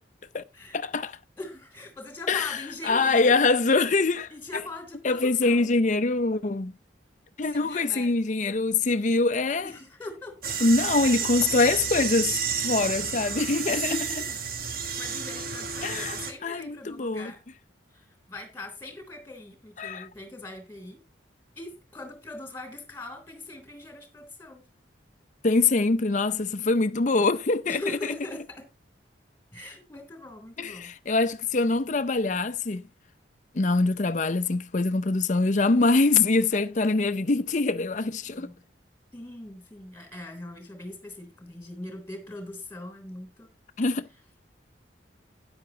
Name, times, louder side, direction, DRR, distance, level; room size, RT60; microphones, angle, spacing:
voice 1, 0.7-1.2 2.3-4.6 5.0-6.7 7.4-9.7 10.6-14.0 15.8-17.3 19.8-20.1 25.4-28.2 30.6-32.8 33.5-38.5 43.8-44.1, left 3 dB, 40° left, 0.6 m, -24 dB
voice 2, 1.4-3.4 4.3-5.7 7.4-8.1 8.8-9.0 9.6-10.7 11.0-11.4 13.7-14.4 15.0-17.4 17.9-21.0 21.6-24.6 27.7-28.7 29.5-30.9 38.3-38.6 39.1-43.5, left 2 dB, 10° left, 3.1 m, -41 dB
sound 1, 10.4-16.3, right 6 dB, 50° right, 1.4 m, -31 dB
12.5 x 9.6 x 2.8 m
head